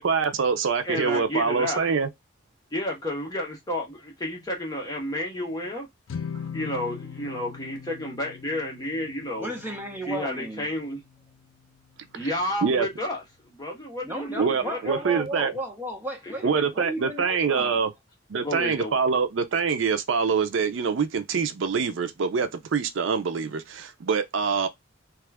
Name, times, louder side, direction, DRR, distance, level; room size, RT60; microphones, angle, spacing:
voice 1, 0.0-2.1 12.1-12.3 12.6-12.9 14.4-15.5 16.4-17.9 18.3-24.7, right 5 dB, 75° right, 0.5 m, -25 dB
voice 2, 0.8-1.9 2.7-5.9 6.5-9.5 10.1-11.0 12.1-13.2 13.5-15.2 16.3-16.4 18.4-19.0, left 1 dB, 20° left, 1.0 m, -31 dB
sound 1, 6.1-12.5, left 6 dB, 90° left, 0.4 m, -41 dB
voice 3, 9.4-10.7 14.0-17.9, right 1 dB, 10° right, 0.7 m, -34 dB
2.9 x 2.4 x 3.3 m
head